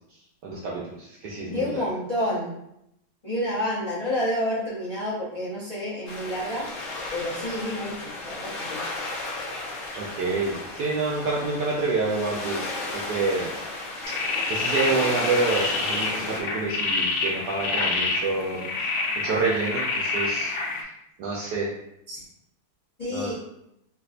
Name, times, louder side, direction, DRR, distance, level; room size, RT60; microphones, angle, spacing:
voice 1, 0.4-0.8 1.2-1.8 10.0-12.7 12.9-13.5 14.5-18.6 19.2-20.5 21.2-21.7 23.1-23.3, right 3 dB, 75° right, -3 dB, 1.0 m, -27 dB
voice 2, 1.5-2.5 3.2-6.6 7.1-8.8 22.1-22.2 23.0-23.3, left 1 dB, 30° left, -9 dB, 0.6 m, -29 dB
sound 1, 6.1-16.4, left 2 dB, 65° left, 0.8 m, -34 dB
sound 2, 14.0-20.8, left 3 dB, 80° left, 1.4 m, -28 dB
3.5 x 2.9 x 2.4 m, 0.81 s
omnidirectional pair, 2.2 m